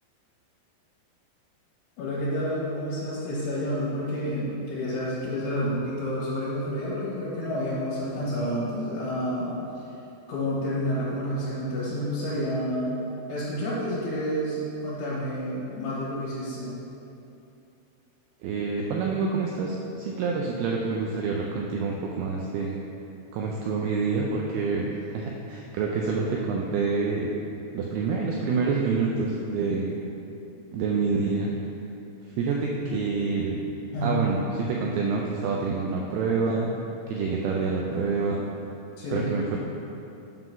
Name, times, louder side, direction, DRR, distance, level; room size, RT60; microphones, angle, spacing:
voice 1, 2.0-9.5 10.3-16.7 33.9-34.2 34.7-34.8 39.0-39.3, equal, 70° left, -8 dB, 3.2 m, -29 dB
voice 2, 18.4-22.8 23.3-27.3 27.7-30.0 30.7-31.5 32.4-33.6 34.0-36.7 37.1-38.4 39.1-39.6, right 4 dB, 85° right, -1 dB, 2.2 m, -27 dB
7.6 x 3.8 x 5.9 m, 2.8 s
omnidirectional pair, 5.1 m